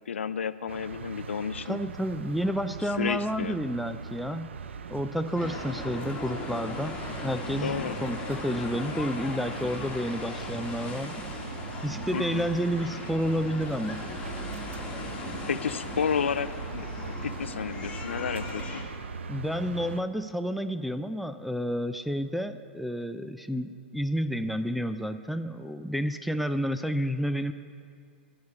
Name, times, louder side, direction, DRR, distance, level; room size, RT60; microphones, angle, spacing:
voice 1, 0.1-1.8 3.0-3.6 7.6-8.0 12.1-12.5 14.8-14.9 15.5-18.8, left 7 dB, 85° left, 15 dB, 0.4 m, -31 dB
sound 1, 0.7-20.0, right 5 dB, 80° right, 0.4 m, -40 dB
voice 2, 1.7-4.5 4.9-7.0 7.2-11.2 11.8-14.0 19.3-27.5, equal, ahead, 8 dB, 0.3 m, -30 dB
sound 2, 5.4-18.8, left 2 dB, 20° left, 1.5 m, -38 dB
12.0 x 5.1 x 8.4 m, 2.3 s
hypercardioid pair, 120°, 6 cm